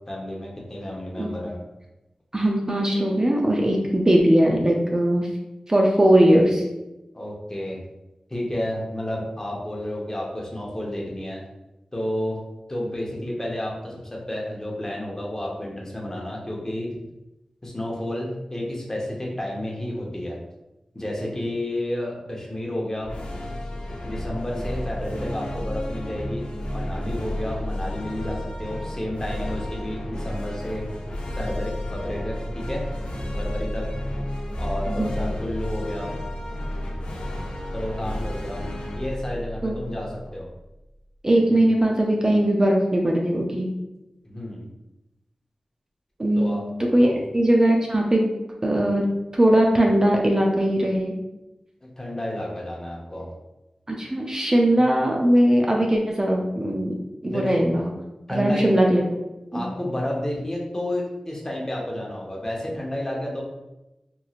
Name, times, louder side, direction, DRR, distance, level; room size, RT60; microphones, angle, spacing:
voice 1, 0.1-1.6 7.1-7.8 8.3-11.4 11.9-12.4 12.7-16.9 17.6-20.4 20.9-23.2 24.0-30.8 31.3-32.9 33.4-33.9 34.6-36.1 37.7-38.6 39.0-40.5 41.5-41.6 44.2-44.7 46.4-46.7 47.0-47.2 51.8-53.3 54.7-54.8 57.3-57.6 58.3-58.7 59.5-63.4, left 1 dB, 25° left, -3 dB, 0.8 m, -31 dB
voice 2, 2.3-5.3 5.7-6.6 34.9-35.1 39.6-39.7 41.2-43.7 46.2-46.6 46.9-47.1 47.3-48.3 48.6-49.1 49.3-51.1 53.9-57.9 58.3-59.0 59.5-59.7, right 1 dB, 30° right, 0 dB, 0.4 m, -20 dB
sound 1, 23.0-40.5, left 1 dB, 70° left, 0.5 m, -31 dB
3.0 x 2.6 x 2.4 m, 0.97 s
cardioid pair, 50°, 2 cm